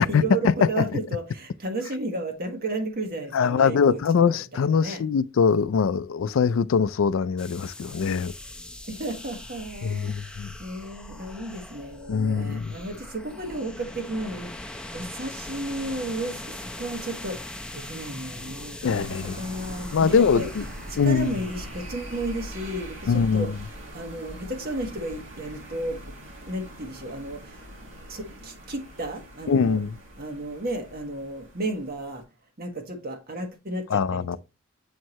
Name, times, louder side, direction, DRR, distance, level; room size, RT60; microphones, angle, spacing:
voice 1, 0.0-5.0 8.9-20.5 20.9-23.5 23.9-26.1 26.4-29.8 30.2-32.2 32.6-34.4, right 2 dB, 50° right, 1.4 m, -33 dB
voice 2, 3.3-8.3 9.8-10.5 12.1-12.7 18.8-19.4 19.9-20.6 21.0-21.4 23.1-23.6 29.5-29.9 33.9-34.4, left 6 dB, 75° left, 0.4 m, -23 dB
sound 1, 7.4-22.7, left 1 dB, 5° left, 0.7 m, -41 dB
sound 2, 18.8-32.2, equal, 75° right, 2.0 m, -42 dB
7.4 x 4.6 x 3.0 m
head